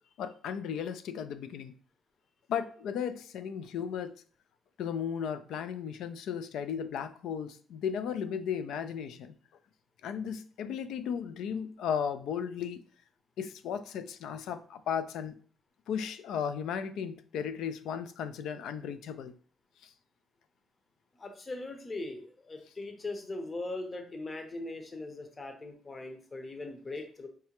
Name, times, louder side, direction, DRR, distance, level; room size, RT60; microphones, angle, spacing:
voice 1, 0.2-1.7 2.5-4.1 4.8-9.3 10.0-12.8 13.4-15.3 15.9-19.3 19.8-19.9, left 7 dB, 80° left, 11 dB, 0.3 m, -35 dB
voice 2, 21.2-27.3, left 2 dB, 30° left, 5 dB, 0.7 m, -40 dB
4.7 x 2.1 x 2.9 m, 0.43 s
cardioid pair, 90°, 0 cm